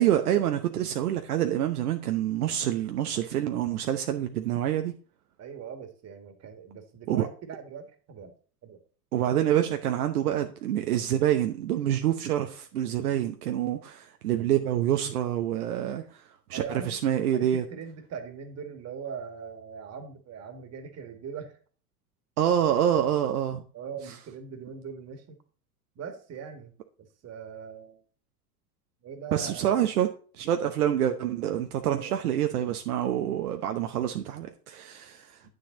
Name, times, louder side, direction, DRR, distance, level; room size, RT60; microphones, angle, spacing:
voice 1, 0.0-4.9 7.1-7.3 9.1-16.0 16.5-17.6 22.4-23.6 29.3-30.1 30.4-35.4, right 11 dB, 70° right, 1.0 m, -26 dB
voice 2, 5.4-8.3 8.6-8.8 15.9-16.1 16.5-17.0 17.3-21.6 23.7-25.4 26.0-26.7 27.0-28.0 29.0-29.7 32.0-32.2 35.4-35.5, right 6 dB, 35° right, 2.0 m, -41 dB
9.6 x 6.7 x 3.9 m
figure-of-eight pair, 85°, 47 cm